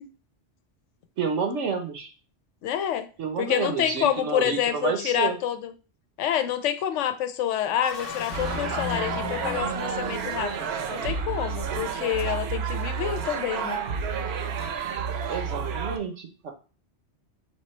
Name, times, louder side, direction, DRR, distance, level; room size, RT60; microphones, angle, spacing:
voice 1, 1.2-2.1 3.2-5.4 15.3-16.5, right 5 dB, 90° right, 5 dB, 1.2 m, -29 dB
voice 2, 2.6-3.1 3.4-5.7 6.2-10.5 10.9-13.8, left 10 dB, 85° left, 10 dB, 0.9 m, -27 dB
sound 1, 7.7-10.7, left 6 dB, 55° left, 0.8 m, -36 dB
sound 2, 8.3-16.0, right 6 dB, 65° right, 0.8 m, -30 dB
3.5 x 3.0 x 4.2 m, 0.34 s
omnidirectional pair, 1.2 m